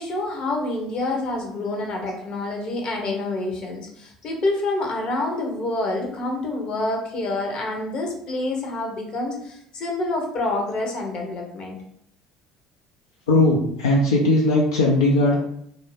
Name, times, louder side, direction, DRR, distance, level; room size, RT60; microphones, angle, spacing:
voice 1, 0.0-11.8, left 2 dB, 50° left, 1 dB, 0.8 m, -27 dB
voice 2, 13.3-15.4, left 2 dB, 85° left, -2 dB, 0.4 m, -18 dB
2.5 x 2.1 x 3.2 m, 0.72 s
hypercardioid pair, 60°, 2 cm